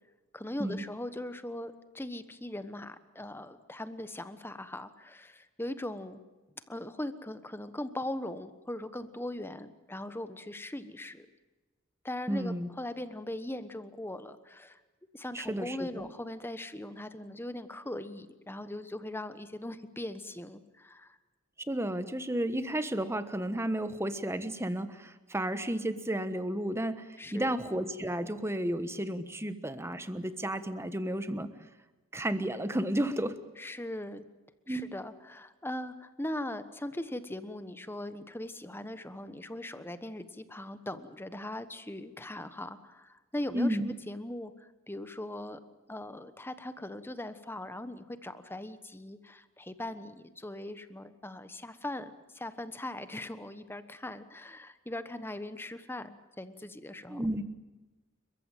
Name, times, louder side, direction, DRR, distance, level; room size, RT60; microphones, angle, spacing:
voice 1, 0.3-6.2 6.7-11.3 12.0-14.8 15.1-21.2 27.2-27.6 33.6-34.2 34.7-45.6 45.9-57.2, left 1 dB, 10° left, 12 dB, 1.2 m, -40 dB
voice 2, 12.3-12.7 15.3-16.1 21.7-31.5 32.1-33.4 34.7-34.9 43.5-43.9 57.1-57.4, right 1 dB, 10° right, 11 dB, 1.3 m, -32 dB
30.0 x 15.0 x 9.2 m, 1.2 s
head